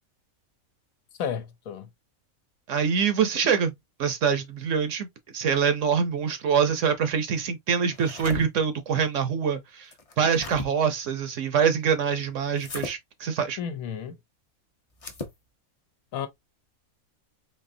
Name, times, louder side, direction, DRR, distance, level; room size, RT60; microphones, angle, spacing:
voice 1, 1.2-1.9 13.6-14.2 16.1-16.3, left 8 dB, 75° left, 1.1 m, -32 dB
voice 2, 2.7-3.7 4.0-5.1 5.3-9.9 10.2-13.6, right 7 dB, 65° right, 1.0 m, -25 dB
sound 1, 7.9-8.5 9.9-10.7 12.6-12.9 14.9-15.4, left 3 dB, 30° left, 0.7 m, -36 dB
4.2 x 2.9 x 2.6 m
omnidirectional pair, 1.5 m